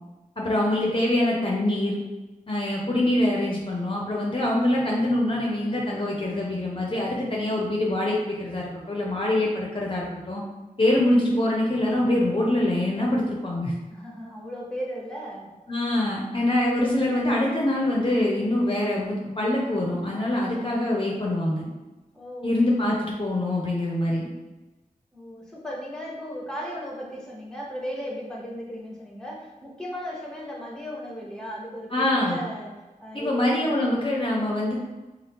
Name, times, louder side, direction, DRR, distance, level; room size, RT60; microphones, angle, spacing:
voice 1, 0.4-2.0 2.5-10.4 10.8-13.7 15.7-21.7 22.4-24.3 31.9-32.4 33.1-34.7, left 1 dB, 35° left, -3 dB, 0.5 m, -24 dB
voice 2, 13.9-15.5 22.1-22.6 25.1-33.8, equal, 5° left, -2 dB, 0.8 m, -36 dB
2.6 x 2.3 x 3.4 m, 1.2 s
wide cardioid pair, 45°, 14 cm